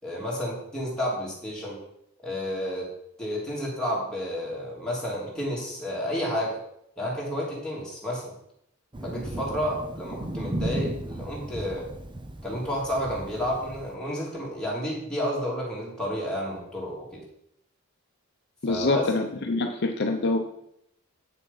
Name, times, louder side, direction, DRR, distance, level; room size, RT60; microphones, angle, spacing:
voice 1, 0.0-1.8 2.2-2.9 3.2-6.6 7.0-8.3 9.0-11.9 12.4-17.2 18.7-19.0, equal, 5° left, -6 dB, 3.1 m, -31 dB
Thunder, 8.9-13.9, right 1 dB, 20° right, 0.7 m, -35 dB
voice 2, 18.6-20.4, left 3 dB, 50° left, 4 dB, 0.8 m, -25 dB
8.4 x 7.1 x 5.6 m, 0.76 s
head